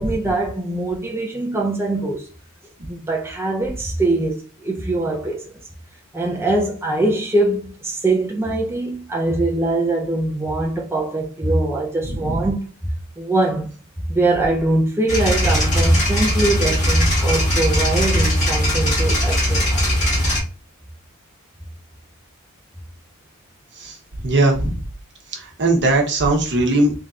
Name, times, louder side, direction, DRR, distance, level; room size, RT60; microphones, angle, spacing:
voice 1, 0.0-2.3 2.9-5.4 6.1-12.6 13.2-13.7 14.1-19.8, right 2 dB, 10° right, 0.5 m, -22 dB
voice 2, 12.1-12.4 23.8-24.0 24.2-24.8 25.3-26.9, right 2 dB, 55° right, 1.0 m, -19 dB
sound 1, 15.1-20.4, equal, 35° left, 1.7 m, -19 dB
3.3 x 2.7 x 3.6 m
head